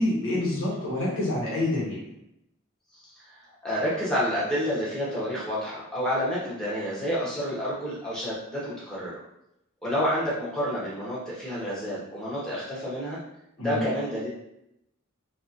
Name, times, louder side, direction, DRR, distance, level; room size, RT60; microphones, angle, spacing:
voice 1, 0.0-2.0 13.6-13.8, left 1 dB, 70° left, -6 dB, 1.2 m, -27 dB
voice 2, 2.9-9.2 9.8-13.2 13.6-14.3, equal, 5° left, -9 dB, 0.9 m, -29 dB
2.9 x 2.7 x 2.5 m, 0.82 s
head